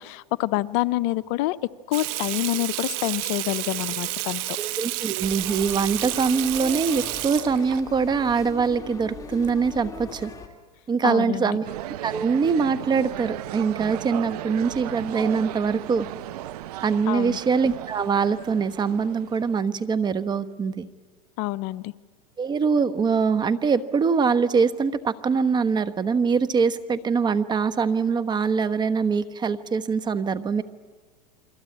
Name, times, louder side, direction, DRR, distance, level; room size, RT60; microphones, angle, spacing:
voice 1, 0.0-1.6 1.9-4.4 11.0-11.6 17.1-17.4 21.4-21.9, left 17 dB, 55° left, 15 dB, 0.8 m, -27 dB
Water tap faucet / Sink (filling or washing), 1.9-7.8, right 19 dB, 55° right, 1.4 m, -30 dB
voice 2, 4.6-10.3 10.9-11.6 12.0-16.1 16.8-20.9 22.4-30.6, right 5 dB, 20° right, 12 dB, 1.2 m, -23 dB
sound 1, 5.2-10.5, left 4 dB, 15° left, 2.9 m, -40 dB
sound 2, 11.6-19.6, right 14 dB, 70° right, 1.0 m, -36 dB
29.5 x 23.0 x 8.6 m, 1.3 s
supercardioid pair, 125°, 20 cm